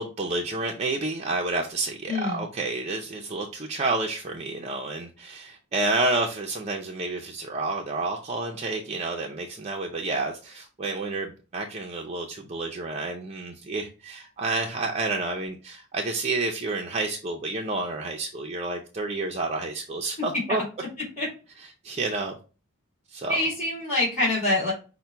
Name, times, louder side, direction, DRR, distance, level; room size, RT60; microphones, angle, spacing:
voice 1, 0.0-20.6 21.8-22.4 23.1-23.4, right 2 dB, 30° right, 1 dB, 0.5 m, -29 dB
voice 2, 2.1-2.5 21.2-21.3 23.3-24.7, left 2 dB, 30° left, -7 dB, 2.6 m, -25 dB
5.6 x 2.2 x 4.3 m, 0.34 s
head